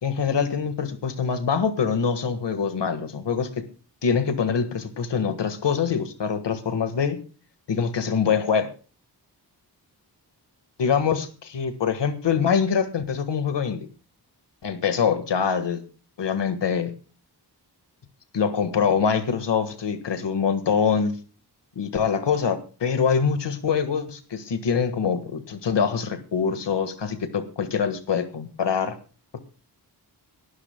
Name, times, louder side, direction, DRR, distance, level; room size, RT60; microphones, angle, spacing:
voice 1, 0.0-3.6 4.0-7.2 7.7-8.7 10.8-13.9 14.6-15.8 16.2-16.9 18.3-21.2 21.7-29.0, left 6 dB, 90° left, 9 dB, 1.7 m, -24 dB
24.5 x 12.5 x 2.2 m, 0.36 s
wide cardioid pair, 95°, 41 cm